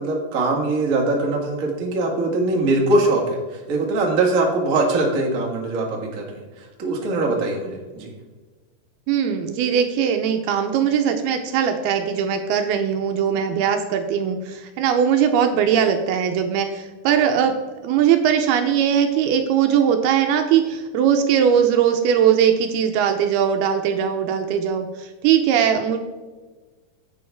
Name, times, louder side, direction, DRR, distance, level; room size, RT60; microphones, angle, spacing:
voice 1, 0.0-8.1, right 2 dB, 40° right, -1 dB, 1.1 m, -22 dB
voice 2, 9.1-17.5 17.8-26.0, right 8 dB, 80° right, 5 dB, 2.5 m, -20 dB
10.5 x 8.5 x 3.5 m, 1.3 s
omnidirectional pair, 4.8 m